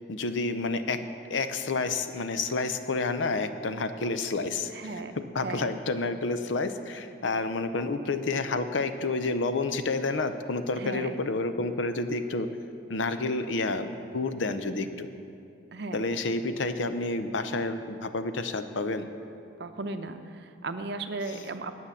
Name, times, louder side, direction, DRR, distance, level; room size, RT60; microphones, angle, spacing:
voice 1, 0.1-1.0 1.3-4.7 5.2-12.5 12.9-15.1 15.9-19.1 21.3-21.4, left 3 dB, 85° left, 9 dB, 0.6 m, -29 dB
voice 2, 4.7-5.1 5.4-5.8 10.8-11.2 15.7-16.1 19.6-21.8, right 3 dB, 60° right, 8 dB, 0.6 m, -36 dB
9.2 x 8.4 x 7.1 m, 2.6 s
head